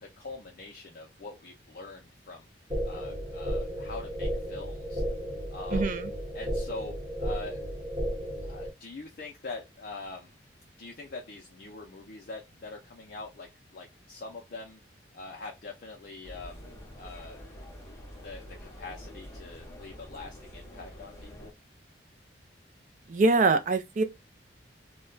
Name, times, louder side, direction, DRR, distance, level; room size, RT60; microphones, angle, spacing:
voice 1, 0.0-2.5 2.8-5.0 5.5-6.0 6.3-7.7 8.4-10.4 10.8-14.8 15.1-16.7 17.0-17.4 18.2-21.5, left 3 dB, 55° left, 0.4 m, -43 dB
sound 1, 2.7-8.7, equal, 25° right, 1.0 m, -33 dB
voice 2, 5.7-6.1 23.1-24.0, right 3 dB, 40° right, 0.3 m, -24 dB
sound 2, 16.2-21.5, equal, 15° left, 0.7 m, -46 dB
2.1 x 2.1 x 3.7 m
head